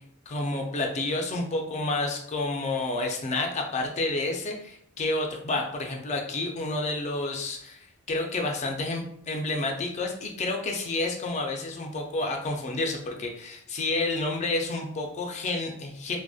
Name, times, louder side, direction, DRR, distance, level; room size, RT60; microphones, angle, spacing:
voice 1, 0.3-16.2, left 2 dB, 30° left, 2 dB, 0.3 m, -30 dB
2.5 x 2.1 x 2.3 m, 0.70 s
head